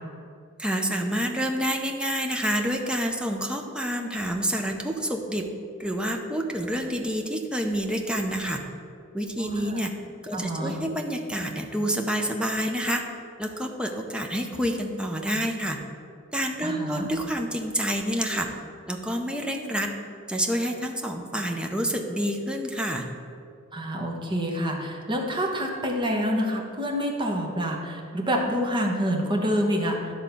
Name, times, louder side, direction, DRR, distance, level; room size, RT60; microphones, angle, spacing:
voice 1, 0.6-5.5 5.8-8.6 9.1-9.9 10.2-13.0 13.4-15.8 16.3-18.5 18.9-19.9 20.3-23.1, equal, 5° right, 2 dB, 0.7 m, -28 dB
voice 2, 10.3-10.7 16.6-17.1 23.7-30.1, equal, 25° right, 0 dB, 1.1 m, -27 dB
11.0 x 3.7 x 6.8 m, 2.4 s
head